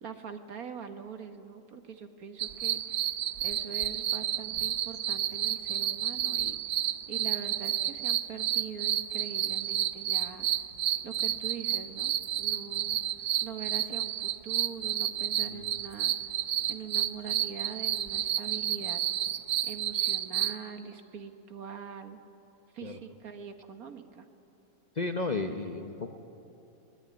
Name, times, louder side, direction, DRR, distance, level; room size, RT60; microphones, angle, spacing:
voice 1, 0.0-3.1 3.4-6.8 7.1-10.5 11.0-13.0 13.4-16.1 16.7-19.0 19.6-22.2 22.7-24.3, right 6 dB, 65° right, 7 dB, 1.7 m, -43 dB
sound 1, 2.4-20.6, right 11 dB, 80° right, 1.3 m, -30 dB
voice 2, 24.9-26.1, left 3 dB, 35° left, 5 dB, 0.8 m, -33 dB
22.0 x 19.0 x 9.5 m, 2.8 s
omnidirectional pair, 1.7 m